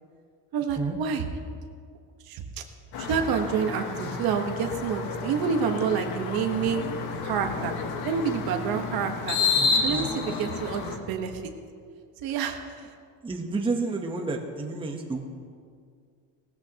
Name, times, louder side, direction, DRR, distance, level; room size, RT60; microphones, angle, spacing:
voice 1, 0.5-1.3 2.3-2.6 3.0-6.9 7.2-7.7 8.0-9.4 9.8-11.5 12.2-12.9, right 6 dB, 60° right, 5 dB, 1.3 m, -28 dB
sound 1, 2.9-11.0, left 4 dB, 65° left, 1.5 m, -30 dB
voice 2, 9.6-10.4 13.2-15.2, right 3 dB, 10° right, 2 dB, 1.0 m, -31 dB
19.0 x 14.5 x 2.9 m, 2.2 s
cardioid pair, 145°, 41 cm